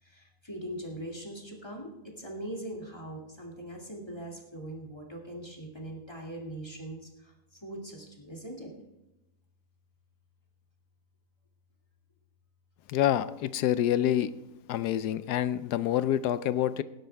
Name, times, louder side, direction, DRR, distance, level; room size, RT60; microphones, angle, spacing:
voice 1, 0.0-8.7, right 1 dB, 15° left, -2 dB, 2.3 m, -41 dB
voice 2, 12.9-14.3 14.7-16.8, left 11 dB, 80° left, 15 dB, 1.1 m, -27 dB
17.5 x 12.0 x 3.4 m, 0.95 s
omnidirectional pair, 1.7 m